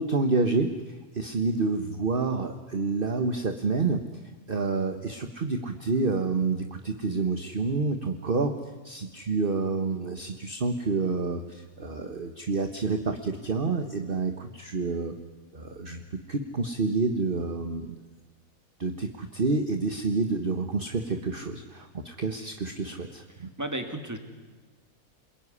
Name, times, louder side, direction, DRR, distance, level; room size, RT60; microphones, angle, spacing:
voice 1, 0.0-4.0 4.5-8.5 8.8-15.2 15.5-16.0 16.3-18.0 18.8-23.5, right 3 dB, 40° right, 6 dB, 1.5 m, -28 dB
voice 2, 23.3-24.2, right 1 dB, 10° right, 6 dB, 2.7 m, -34 dB
28.0 x 21.5 x 9.8 m, 1.3 s
omnidirectional pair, 1.5 m